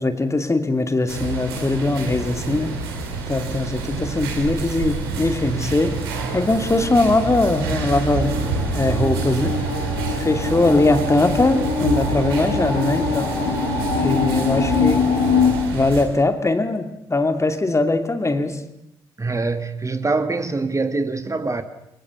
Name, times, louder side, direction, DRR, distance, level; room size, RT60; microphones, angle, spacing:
voice 1, 0.0-2.8 3.3-6.0 6.3-8.4 8.7-9.5 10.2-13.4 14.0-15.1 15.7-18.6, left 2 dB, 25° left, 2.5 m, -21 dB
sound 1, 1.1-16.0, right 4 dB, 80° right, 2.9 m, -27 dB
sound 2, 5.5-15.5, left 5 dB, 70° left, 5.7 m, -24 dB
voice 2, 19.2-21.6, right 3 dB, 25° right, 2.0 m, -24 dB
23.5 x 21.0 x 7.1 m
figure-of-eight pair, 40°, 12 cm